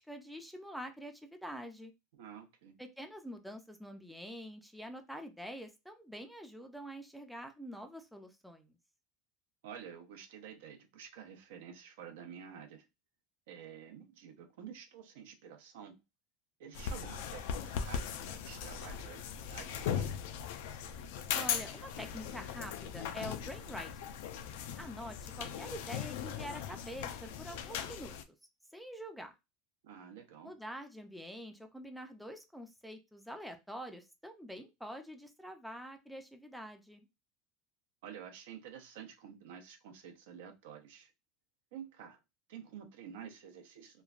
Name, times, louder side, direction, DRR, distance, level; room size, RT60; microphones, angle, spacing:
voice 1, 0.0-1.9 2.8-8.7 21.3-24.2 24.8-28.1 28.7-29.3 30.4-37.1, equal, ahead, 0.3 m, -46 dB
voice 2, 2.1-2.8 9.6-12.9 13.5-16.0 16.6-20.1 29.8-30.5 38.0-41.1 41.7-42.2 42.5-44.0, right 8 dB, 85° right, 0.6 m, -50 dB
sound 1, 16.7-28.2, left 8 dB, 75° left, 0.4 m, -39 dB
3.0 x 2.2 x 2.4 m
supercardioid pair, 160°, 0 cm